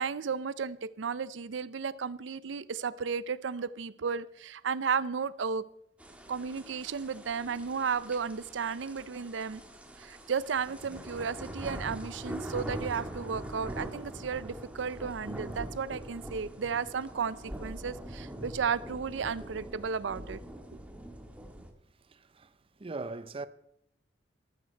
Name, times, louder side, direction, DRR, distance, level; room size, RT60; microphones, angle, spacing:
voice 1, 0.0-5.6 6.3-9.6 10.0-20.4, right 6 dB, 75° right, 0.5 m, -34 dB
sound 1, 6.0-21.7, right 1 dB, 5° right, 1.6 m, -43 dB
voice 2, 21.8-23.5, right 3 dB, 30° right, 0.6 m, -41 dB
13.0 x 13.0 x 4.5 m
head